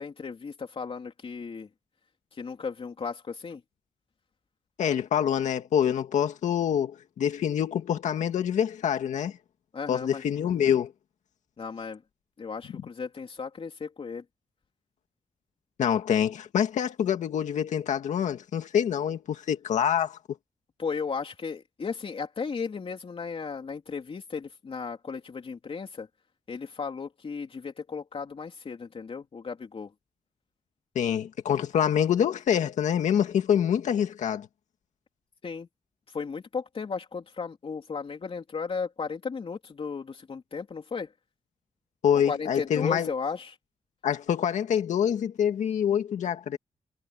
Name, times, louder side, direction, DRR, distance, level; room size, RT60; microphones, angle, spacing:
voice 1, 0.0-1.7 2.3-3.6 9.7-10.2 11.6-12.0 12.4-14.2 20.8-26.1 26.5-29.9 35.4-35.7 36.1-41.1 42.3-43.6, left 5 dB, 50° left, 3.5 m, -35 dB
voice 2, 4.8-9.3 9.9-10.9 15.8-20.2 31.0-34.5 42.0-43.1 44.0-46.6, left 9 dB, 90° left, 2.0 m, -26 dB
cardioid pair, 85°, 12 cm